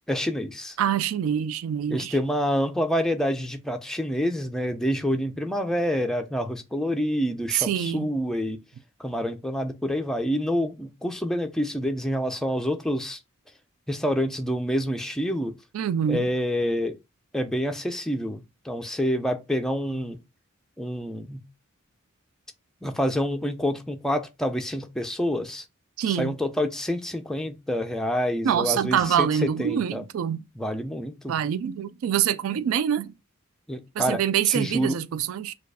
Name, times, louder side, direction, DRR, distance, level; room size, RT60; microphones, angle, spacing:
voice 1, 0.1-0.8 1.9-8.6 9.0-13.2 13.9-15.6 16.1-17.0 17.3-20.2 20.8-21.4 22.8-25.6 26.1-30.0 30.6-31.3 33.7-35.0, equal, ahead, 0.4 m, -27 dB
voice 2, 0.8-2.2 7.5-8.1 15.7-16.3 26.0-26.3 28.4-30.4 31.3-33.1 34.0-35.5, right 9 dB, 80° right, 0.3 m, -25 dB
4.6 x 2.4 x 4.7 m
head